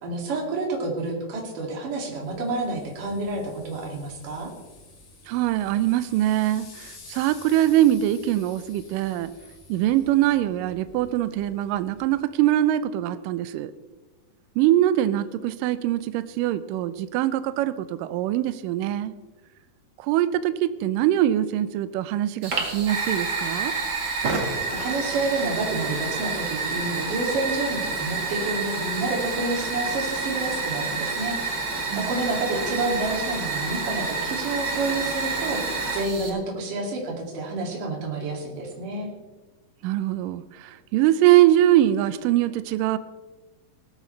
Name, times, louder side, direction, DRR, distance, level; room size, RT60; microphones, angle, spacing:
voice 1, 0.0-4.5 24.7-31.4 32.0-39.1, right 2 dB, 65° right, -1 dB, 3.9 m, -29 dB
sound 1, 2.0-12.3, left 3 dB, 70° left, 4.5 m, -49 dB
voice 2, 5.3-9.3 9.7-13.7 14.6-19.1 20.0-23.7 31.9-32.1 39.8-43.0, right 13 dB, 80° right, 13 dB, 2.1 m, -23 dB
Fire, 22.4-36.3, right 3 dB, 45° right, 1.5 m, -28 dB
18.0 x 13.5 x 3.2 m, 1.2 s
omnidirectional pair, 4.2 m